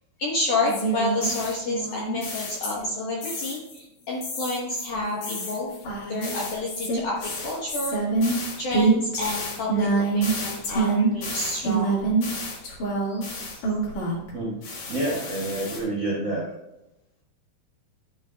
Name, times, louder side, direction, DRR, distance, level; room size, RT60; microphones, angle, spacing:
voice 1, 0.2-5.8 6.1-8.0 8.6-12.0 12.9-13.6, left 2 dB, 65° left, -4 dB, 2.0 m, -29 dB
sound 1, 0.6-2.9 3.2-3.8 4.2-14.3 14.6-15.8, right 3 dB, 50° left, 2.7 m, -27 dB
voice 2, 14.9-16.5, right 2 dB, 50° right, -5 dB, 1.4 m, -28 dB
11.5 x 8.7 x 2.3 m, 0.91 s
omnidirectional pair, 5.1 m